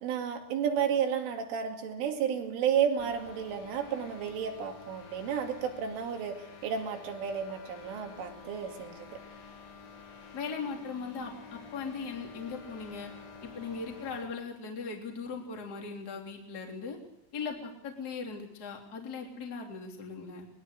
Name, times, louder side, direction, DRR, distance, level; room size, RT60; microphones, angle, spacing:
voice 1, 0.0-9.2, right 8 dB, 70° right, 4 dB, 4.8 m, -32 dB
sound 1, 3.0-14.4, left 5 dB, 45° left, 4.3 m, -50 dB
voice 2, 10.3-13.1 13.4-17.0 17.3-20.5, left 5 dB, 25° left, 1 dB, 2.9 m, -39 dB
22.5 x 21.0 x 6.6 m, 0.81 s
omnidirectional pair, 6.0 m